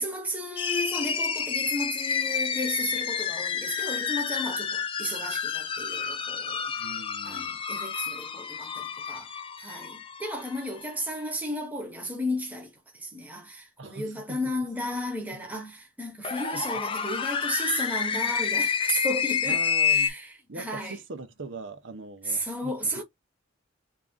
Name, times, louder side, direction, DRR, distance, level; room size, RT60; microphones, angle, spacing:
voice 1, 0.0-7.0 7.2-9.3 9.6-21.0 22.2-23.0, equal, 10° right, 1.0 m, -34 dB
sound 1, 0.6-10.9 16.2-20.1, left 6 dB, 25° left, 0.4 m, -29 dB
voice 2, 6.8-7.6 13.8-14.4 16.5-16.6 19.4-20.1 20.5-22.9, right 2 dB, 75° right, 0.8 m, -41 dB
3.6 x 2.8 x 3.5 m
head